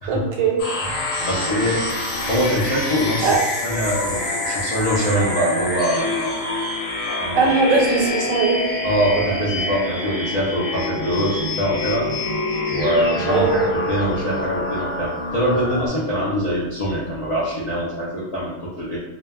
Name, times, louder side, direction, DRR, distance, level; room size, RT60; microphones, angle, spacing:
voice 1, 0.1-0.6 1.1-1.3 3.2-3.4 7.4-8.6 13.3-13.6, right 4 dB, 85° right, 0 dB, 1.0 m, -19 dB
sound 1, 0.6-15.9, left 1 dB, 80° left, 1.0 m, -26 dB
voice 2, 0.8-1.8 2.3-3.4 3.6-6.3 7.2-7.5 8.8-12.1 12.7-19.0, equal, 60° left, -8 dB, 0.4 m, -23 dB
2.2 x 2.1 x 3.4 m, 1.1 s
omnidirectional pair, 1.4 m